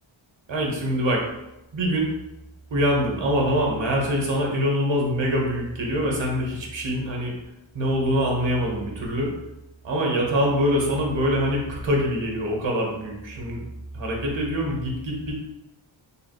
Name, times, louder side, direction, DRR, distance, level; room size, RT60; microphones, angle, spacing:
voice 1, 0.5-1.2 1.7-2.1 2.7-7.3 7.7-9.3 9.8-13.6 13.9-15.4, equal, 65° right, -2 dB, 1.2 m, -24 dB
4.4 x 3.7 x 2.4 m, 0.92 s
wide cardioid pair, 130°, 49 cm